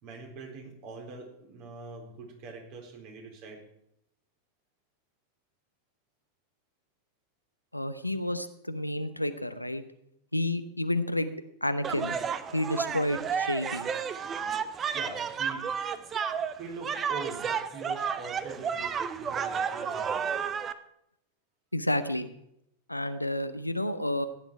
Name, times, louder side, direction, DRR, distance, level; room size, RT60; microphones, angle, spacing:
voice 1, 0.0-3.6 14.9-15.7 16.5-20.5, right 4 dB, 45° right, 1 dB, 4.0 m, -43 dB
voice 2, 7.7-9.8 10.3-11.3 11.6-12.2 12.5-13.9 21.7-22.3 22.9-24.3, left 1 dB, 85° left, 11 dB, 0.9 m, -30 dB
sound 1, 11.8-20.7, right 7 dB, 25° right, 0.8 m, -32 dB
15.0 x 10.0 x 4.8 m, 0.77 s
figure-of-eight pair, 90°, 0 cm